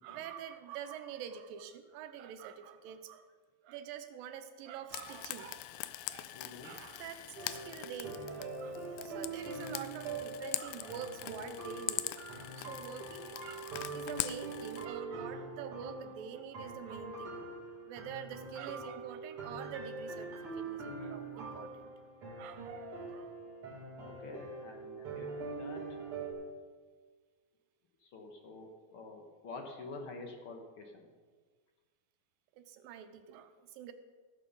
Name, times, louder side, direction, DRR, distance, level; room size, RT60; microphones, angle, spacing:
voice 1, 0.0-3.3 3.6-17.4 17.9-21.9 22.4-23.3 32.6-33.9, right 8 dB, 90° right, 8 dB, 2.5 m, -46 dB
Frying (food), 4.9-14.9, left 15 dB, 85° left, 1.8 m, -43 dB
voice 2, 6.3-6.7 24.0-25.8 28.0-31.1, left 3 dB, 70° left, 3 dB, 1.3 m, -48 dB
sound 1, 7.4-26.3, right 3 dB, 40° right, 3.1 m, -43 dB
17.0 x 6.8 x 5.4 m, 1.5 s
omnidirectional pair, 4.0 m